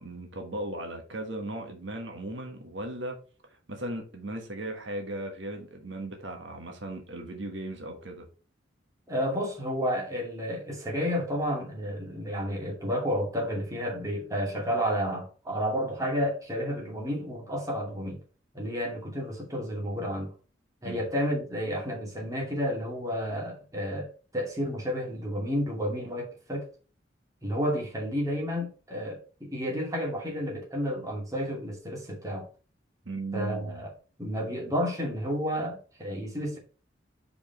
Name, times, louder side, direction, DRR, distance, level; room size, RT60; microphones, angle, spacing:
voice 1, 0.0-3.2 3.5-8.2 20.8-21.1 33.0-33.9, right 1 dB, 70° right, 1.4 m, -37 dB
voice 2, 9.1-18.2 18.5-20.3 20.8-26.7 27.4-32.5 33.3-33.9 34.2-36.6, equal, 15° right, 2.4 m, -31 dB
5.1 x 5.0 x 5.5 m
head